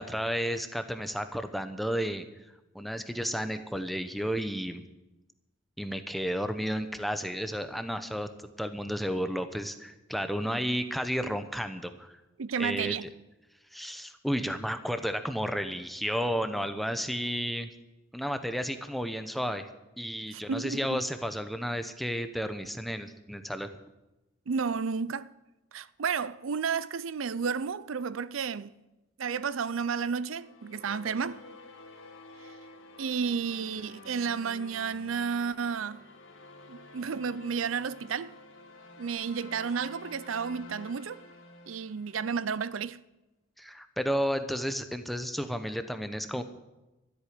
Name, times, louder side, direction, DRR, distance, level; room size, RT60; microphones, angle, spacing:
voice 1, 0.0-2.3 2.7-4.8 5.8-12.2 12.6-13.1 13.7-17.7 18.1-19.7 20.0-23.7 43.6-46.4, equal, ahead, 0.8 m, -32 dB
voice 2, 12.4-13.1 20.3-21.0 24.5-25.3 25.7-28.8 29.2-31.4 32.4-32.5 33.0-36.0 36.7-38.3 39.0-41.2 41.7-43.0, right 6 dB, 85° right, 0.5 m, -32 dB
sound 1, 30.3-42.7, left 2 dB, 80° left, 1.9 m, -50 dB
13.5 x 8.4 x 9.5 m
head